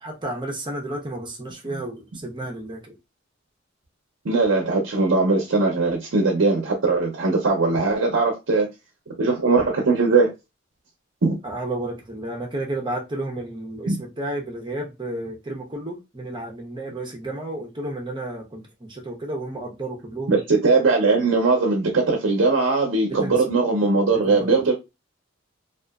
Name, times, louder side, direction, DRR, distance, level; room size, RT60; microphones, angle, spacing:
voice 1, 0.0-3.0 11.4-20.4 23.2-23.4 24.1-24.6, right 1 dB, 25° right, 0.7 m, -32 dB
voice 2, 4.2-8.7 9.2-10.3 11.2-11.3 13.9-14.0 20.3-24.7, right 3 dB, 80° right, 0.6 m, -20 dB
2.7 x 2.4 x 2.3 m
head